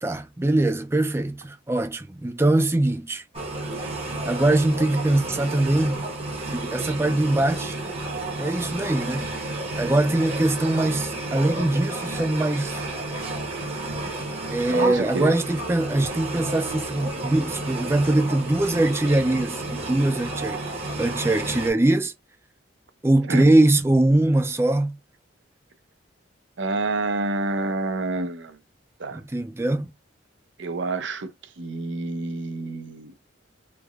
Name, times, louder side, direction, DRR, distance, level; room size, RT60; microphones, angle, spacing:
voice 1, 0.0-3.2 4.3-6.0 6.5-7.8 8.4-9.5 9.8-12.8 14.5-20.6 21.0-22.1 23.0-25.0 29.1-29.9, right 2 dB, 15° right, 0.3 m, -22 dB
sound 1, 3.3-21.7, right 2 dB, 30° right, 0.8 m, -31 dB
voice 2, 14.7-15.3 23.3-23.5 26.6-28.6 29.0-29.2 30.6-33.1, right 3 dB, 70° right, 0.6 m, -28 dB
3.3 x 2.1 x 2.3 m
head